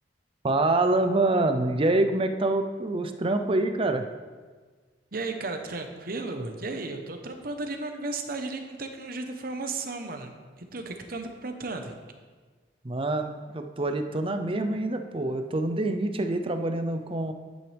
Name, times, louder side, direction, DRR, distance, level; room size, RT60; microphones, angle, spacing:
voice 1, 0.4-4.0 12.8-17.3, right 2 dB, 30° right, 7 dB, 0.6 m, -26 dB
voice 2, 5.1-11.9, right 3 dB, 55° right, 5 dB, 1.0 m, -34 dB
11.0 x 9.1 x 3.4 m, 1.4 s
head